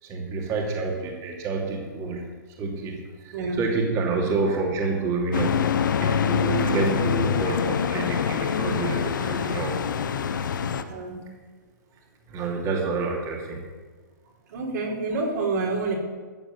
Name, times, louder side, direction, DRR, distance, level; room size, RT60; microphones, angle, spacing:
voice 1, 0.0-2.2 2.6-5.6 6.0-9.7 12.3-13.7, right 4 dB, 30° right, -1 dB, 2.8 m, -28 dB
voice 2, 3.3-3.7 4.1-4.4 10.8-11.3 12.4-12.5 14.5-15.9, right 3 dB, 60° right, -1 dB, 4.5 m, -29 dB
sound 1, 5.3-10.8, left 7 dB, 70° left, 1.1 m, -25 dB
13.5 x 8.0 x 7.7 m, 1.4 s
hypercardioid pair, 135°, 11 cm